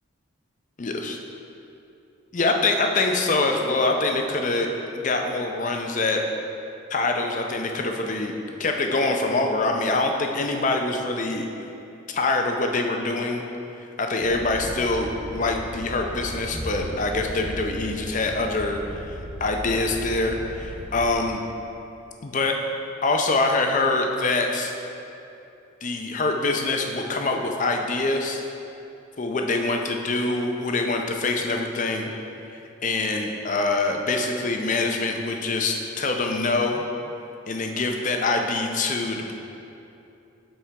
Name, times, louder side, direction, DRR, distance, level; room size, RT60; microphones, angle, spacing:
voice 1, 0.8-1.2 2.3-4.7 4.9-6.2 6.9-8.3 8.6-11.5 12.1-13.4 14.0-18.8 19.1-21.4 22.2-22.6 23.0-24.7 25.8-28.4 29.2-32.1 32.8-36.8 37.5-39.3, left 3 dB, 35° left, 3 dB, 0.5 m, -24 dB
sound 1, 14.2-21.2, right 1 dB, 10° right, 0.9 m, -36 dB
12.0 x 4.3 x 3.4 m, 2.8 s
head